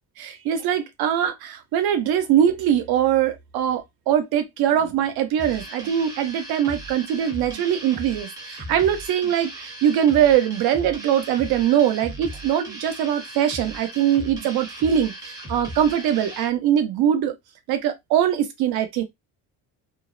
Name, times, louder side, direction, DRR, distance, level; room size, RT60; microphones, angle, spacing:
voice 1, 0.2-17.3 17.7-19.0, right 10 dB, 90° right, 0.7 m, -22 dB
sound 1, 5.4-16.5, right 1 dB, 10° right, 0.5 m, -37 dB
2.5 x 2.1 x 2.4 m
cardioid pair, 175°, 36 cm